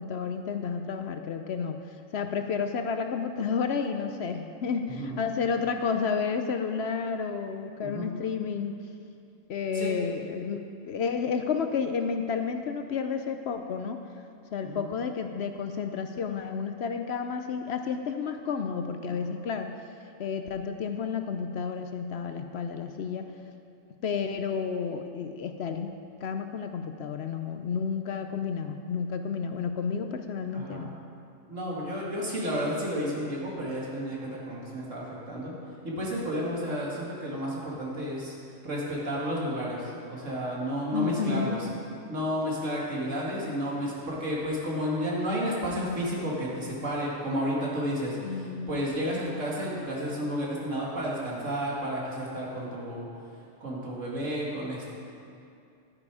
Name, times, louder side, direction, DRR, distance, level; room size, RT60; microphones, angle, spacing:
voice 1, 0.0-1.8 2.1-8.8 9.5-14.1 14.5-19.7 20.2-23.3 24.0-25.9 26.2-30.9 40.9-41.6 48.2-48.8, left 6 dB, 65° left, 7 dB, 0.8 m, -31 dB
voice 2, 30.5-30.9 31.5-35.5 35.8-38.3 38.6-41.7 42.1-53.1 53.6-54.8, equal, 75° right, -4 dB, 2.6 m, -31 dB
12.0 x 9.9 x 4.8 m, 2.5 s
omnidirectional pair, 1.3 m